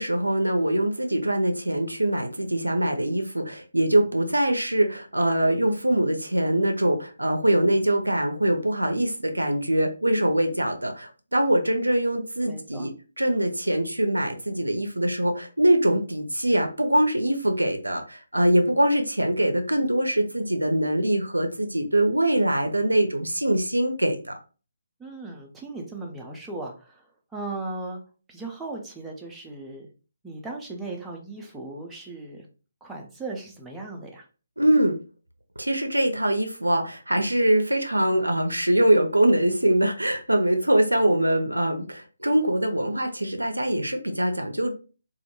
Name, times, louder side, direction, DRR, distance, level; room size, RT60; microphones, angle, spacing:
voice 1, 0.0-12.9 13.2-24.3 34.6-35.0 35.6-44.7, right 1 dB, 90° right, 5 dB, 0.4 m, -23 dB
voice 2, 12.5-12.9 25.0-28.0 28.3-29.9 30.2-32.5 32.8-34.3, right 2 dB, 5° right, -1 dB, 0.4 m, -37 dB
2.2 x 2.1 x 2.9 m, 0.36 s
figure-of-eight pair, 145°, 0 cm